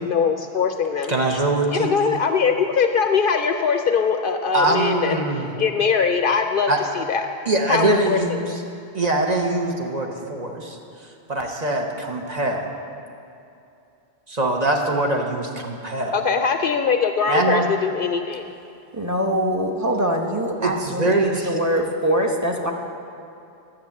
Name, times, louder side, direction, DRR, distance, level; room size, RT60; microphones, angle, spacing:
voice 1, 0.0-1.1 1.7-5.2 5.6-6.7 6.9-7.3 7.7-8.5 16.1-18.5, left 6 dB, 60° left, 6 dB, 0.6 m, -21 dB
voice 2, 1.1-1.9 4.5-5.5 6.7-6.8 7.5-8.6 8.9-10.8 11.3-12.7 14.3-16.1 17.3-17.7 20.6-21.5, right 2 dB, 40° right, 1 dB, 1.0 m, -23 dB
voice 3, 18.9-22.7, equal, 15° right, 1 dB, 0.8 m, -23 dB
10.5 x 7.6 x 7.1 m, 2.7 s
omnidirectional pair, 1.1 m